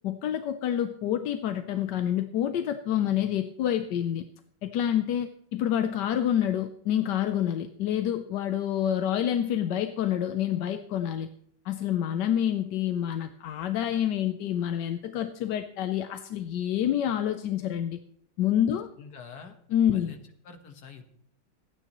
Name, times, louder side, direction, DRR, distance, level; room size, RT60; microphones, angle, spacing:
voice 1, 0.0-4.2 4.6-11.3 11.6-18.0 18.4-18.9 19.7-20.1, left 10 dB, 65° left, 8 dB, 1.1 m, -27 dB
voice 2, 19.0-19.6 19.9-20.2 20.5-21.0, left 6 dB, 50° left, 6 dB, 1.8 m, -46 dB
26.0 x 9.3 x 3.0 m, 0.66 s
omnidirectional pair, 2.3 m